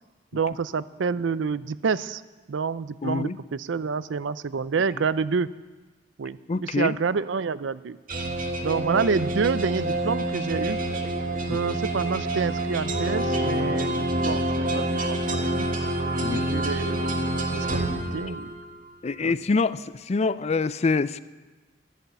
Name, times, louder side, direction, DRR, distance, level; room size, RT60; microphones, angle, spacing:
voice 1, 0.3-2.2 2.5-5.5 6.2-8.0 8.6-10.8 11.5-15.7 16.4-17.1 17.5-18.5 19.2-19.4, right 5 dB, 85° right, 16 dB, 0.5 m, -28 dB
voice 2, 3.0-3.4 6.5-7.0 11.5-11.6 16.2-16.5 18.1-18.2 19.0-21.2, left 4 dB, 35° left, 15 dB, 0.4 m, -25 dB
sound 1, 8.1-18.7, right 1 dB, 50° right, 1.6 m, -27 dB
13.0 x 11.0 x 8.0 m, 1.2 s
head